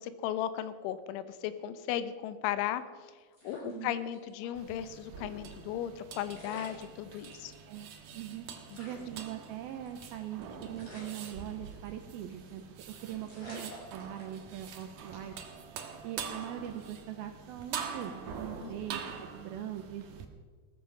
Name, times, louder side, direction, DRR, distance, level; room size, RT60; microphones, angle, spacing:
voice 1, 0.0-2.8 3.4-7.5 8.7-8.8 18.6-18.7, left 11 dB, 85° left, 13 dB, 3.3 m, -36 dB
sound 1, 3.3-4.5 4.9-5.0 6.0-6.1 6.3-7.5 8.0-8.1 8.3-8.4 8.7-10.3 10.8-12.0 12.3-12.6 12.9-13.0 13.3-14.7 15.1-15.4, equal, 20° left, 6.7 m, -50 dB
voice 2, 3.6-4.0 7.7-8.5 8.8-15.3 16.0-19.0 19.3-20.2, right 11 dB, 90° right, 7 dB, 2.1 m, -41 dB
sound 2, 4.5-20.2, right 6 dB, 65° right, 2.2 m, -45 dB
17.5 x 14.0 x 5.5 m, 1.5 s
omnidirectional pair, 5.5 m